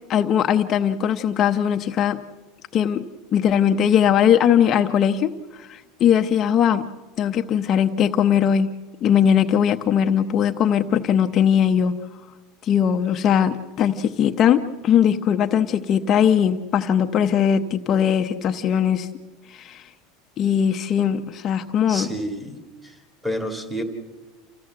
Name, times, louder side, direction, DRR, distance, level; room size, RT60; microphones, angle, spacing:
voice 1, 0.1-2.2 2.7-3.1 3.3-6.9 7.2-8.7 9.0-11.9 12.6-19.1 19.5-19.9 20.4-22.1, left 8 dB, 30° left, 6 dB, 0.8 m, -20 dB
voice 2, 21.9-23.8, equal, ahead, 3 dB, 2.0 m, -30 dB
28.5 x 15.0 x 7.7 m, 1.2 s
supercardioid pair, 150°, 0 cm